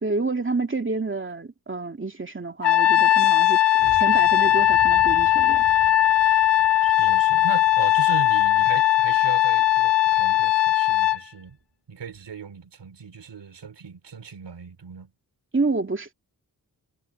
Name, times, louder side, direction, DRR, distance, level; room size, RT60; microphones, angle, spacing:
voice 1, 0.0-3.6 3.9-5.6 15.5-16.1, right 3 dB, 30° right, 2.4 m, -28 dB
Trumpet, 2.6-11.2, left 13 dB, 90° left, 0.8 m, -19 dB
sound 1, 3.8-10.5 10.9-11.0 11.4-11.6 12.1-12.3, right 4 dB, 55° right, 5.0 m, -45 dB
voice 2, 6.8-11.6 11.9-15.1, right 6 dB, 85° right, 3.5 m, -37 dB
cardioid pair, 55°, 41 cm